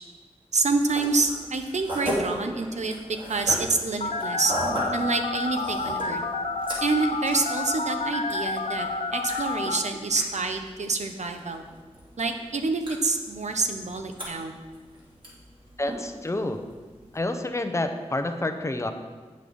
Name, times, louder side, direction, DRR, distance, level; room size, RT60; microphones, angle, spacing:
voice 1, 0.5-2.9 3.3-4.5 4.9-6.2 6.8-11.6 12.2-14.5, right 3 dB, 80° right, 6 dB, 0.8 m, -27 dB
sound 1, 0.6-17.2, equal, 45° right, 2.9 m, -37 dB
Telephone, 4.0-9.8, left 3 dB, 90° left, 0.6 m, -30 dB
voice 2, 15.8-16.7 17.1-18.9, left 2 dB, 25° left, 7 dB, 0.7 m, -28 dB
8.3 x 6.4 x 5.4 m, 1.4 s
wide cardioid pair, 80°, 12 cm